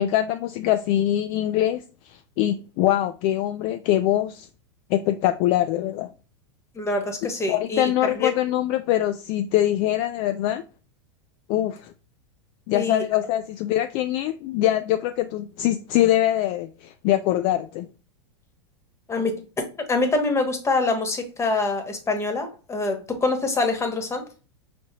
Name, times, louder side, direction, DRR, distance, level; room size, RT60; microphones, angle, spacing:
voice 1, 0.0-4.5 4.9-6.1 7.5-10.6 11.5-11.9 12.7-17.9, left 13 dB, 45° left, 0.4 m, -23 dB
voice 2, 6.7-8.3 12.7-13.0 19.1-19.4 19.9-24.3, left 3 dB, 20° left, 1.1 m, -25 dB
5.1 x 3.3 x 2.8 m
hypercardioid pair, 105°, 15 cm